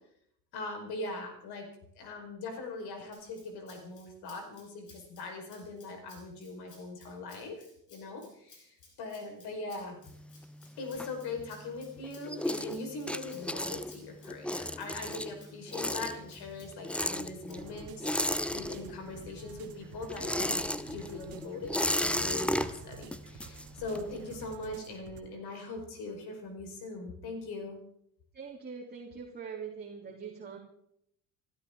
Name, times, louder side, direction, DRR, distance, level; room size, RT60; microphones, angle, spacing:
voice 1, 0.5-1.7 1.9-10.0 10.8-20.6 20.9-27.8, left 3 dB, 50° left, 4 dB, 4.9 m, -41 dB
Rattle (instrument), 3.1-17.5, left 3 dB, 80° left, 3.7 m, -59 dB
sound 1, 10.0-11.7 12.0-19.2 19.5-24.2, left 1 dB, ahead, 0.8 m, -34 dB
sound 2, 17.5-25.2, right 6 dB, 45° right, 2.4 m, -51 dB
voice 2, 28.3-30.6, right 6 dB, 20° right, -3 dB, 3.2 m, -43 dB
28.5 x 12.5 x 3.8 m, 0.73 s
figure-of-eight pair, 60°, 47 cm